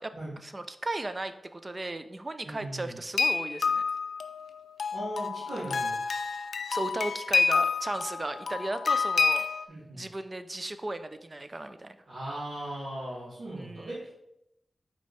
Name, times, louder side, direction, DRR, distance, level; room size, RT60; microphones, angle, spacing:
voice 1, 0.0-3.8 6.7-9.5 9.9-12.0 13.5-13.9, right 2 dB, 30° right, 10 dB, 0.4 m, -36 dB
voice 2, 2.4-3.0 4.9-6.0 9.7-10.0 12.1-14.1, right 1 dB, 80° right, -11 dB, 2.3 m, -38 dB
sound 1, 3.2-9.6, left 5 dB, 80° left, 0.4 m, -28 dB
5.2 x 4.5 x 4.1 m, 0.82 s
wide cardioid pair, 85°, 0 cm